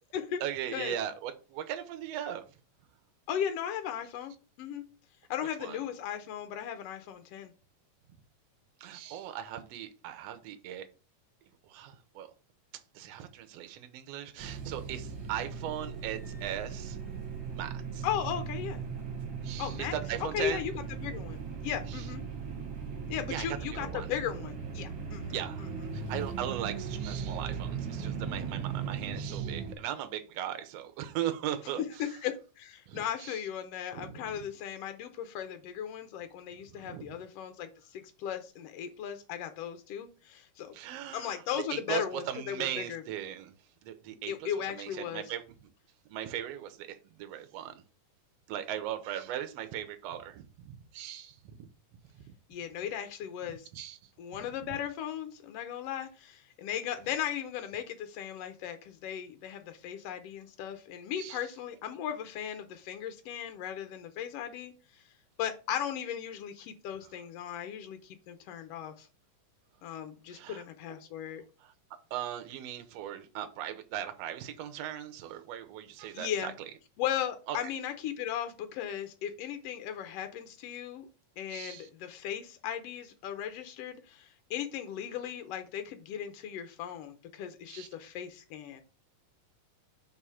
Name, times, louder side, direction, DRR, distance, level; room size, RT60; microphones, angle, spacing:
voice 1, 0.4-2.5 5.6-5.8 8.8-10.9 11.7-12.3 12.9-17.0 17.5-18.0 19.4-20.6 23.3-23.5 23.7-24.1 25.3-31.8 32.9-33.4 33.9-34.3 36.7-37.1 40.7-41.4 41.7-43.5 43.8-45.4 46.1-47.7 48.5-51.7 52.1-52.2 53.7-54.0 61.2-61.4 70.3-70.6 72.1-76.5 77.5-77.6 81.5-81.9 87.7-87.9, right 11 dB, 75° right, 1.5 m, -38 dB
voice 2, 3.3-4.3 4.6-4.8 5.3-7.5 18.0-18.8 19.6-22.2 23.1-25.7 32.0-40.7 41.1-43.0 44.3-45.2 52.5-53.7 54.2-65.0 65.4-69.1 69.8-71.4 76.1-76.5 77.0-81.1 81.4-88.8, left 9 dB, 85° left, 1.3 m, -37 dB
sound 1, 14.4-29.7, right 6 dB, 50° right, 1.6 m, -38 dB
4.8 x 3.7 x 5.6 m
omnidirectional pair, 3.7 m